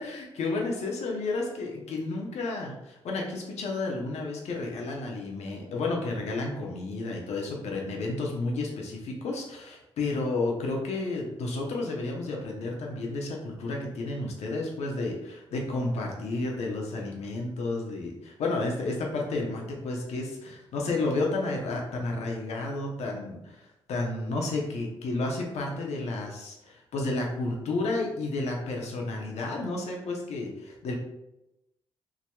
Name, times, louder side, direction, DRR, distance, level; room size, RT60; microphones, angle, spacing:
voice 1, 0.0-23.6 23.9-30.9, left 2 dB, 70° left, 0 dB, 0.9 m, -31 dB
4.8 x 2.8 x 2.3 m, 0.91 s
supercardioid pair, 50°, 12 cm